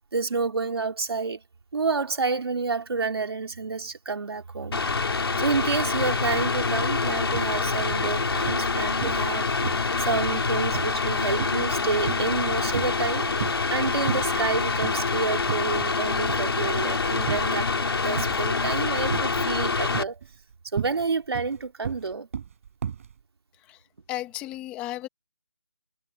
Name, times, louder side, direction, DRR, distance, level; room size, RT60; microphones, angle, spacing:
voice 1, 0.1-1.4 1.7-4.8 5.3-9.6 10.0-13.3 13.7-20.2 20.7-22.3, right 4 dB, 60° right, 3.4 m, -29 dB
Mechanical fan, 4.7-20.0, left 4 dB, 60° left, 4.5 m, -26 dB
sound 1, 7.2-7.5 7.9-8.7 9.0-9.3 9.6-12.4 12.7-13.7 14.1-14.5 14.8-15.0 15.4-16.0 16.3-17.6 18.2-18.6 19.1-19.6 19.9-23.1, right 8 dB, 30° right, 7.6 m, -34 dB
voice 2, 24.1-25.1, left 15 dB, 10° left, 1.7 m, -34 dB
hypercardioid pair, 170°, 15 cm